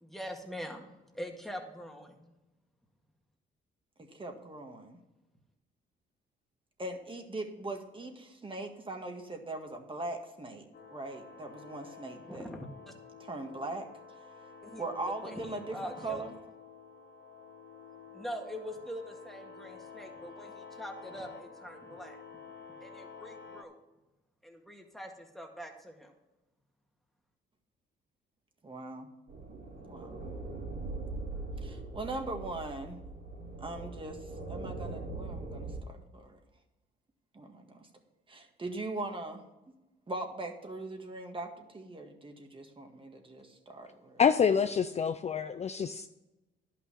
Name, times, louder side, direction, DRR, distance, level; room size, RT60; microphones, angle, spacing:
voice 1, 0.0-2.3 12.2-12.9 14.6-16.2 18.1-22.2 22.8-23.8 24.4-26.1, equal, ahead, 1.9 m, -43 dB
voice 2, 4.0-5.0 6.8-10.7 10.9-12.5 13.3-13.9 14.8-16.3 28.6-29.1 29.9-30.1 31.6-33.0 33.6-34.2 34.5-36.4 37.3-37.9 38.3-39.4 40.1-44.2, right 2 dB, 25° right, 1.7 m, -40 dB
sound 1, 10.7-23.6, left 5 dB, 60° left, 1.2 m, -50 dB
sound 2, 29.3-35.8, right 3 dB, 70° right, 3.0 m, -41 dB
voice 3, 44.2-46.1, left 6 dB, 35° left, 0.4 m, -27 dB
11.0 x 6.0 x 6.9 m
cardioid pair, 90°, 20 cm